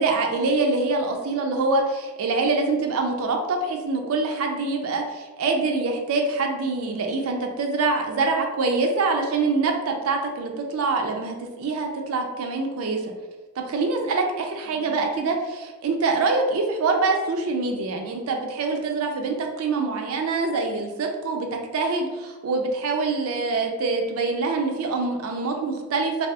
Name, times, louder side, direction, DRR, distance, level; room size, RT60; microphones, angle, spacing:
voice 1, 0.0-13.0 13.6-21.5 21.7-26.3, right 3 dB, 80° right, 3 dB, 0.4 m, -25 dB
2.7 x 2.3 x 2.2 m, 1.2 s
head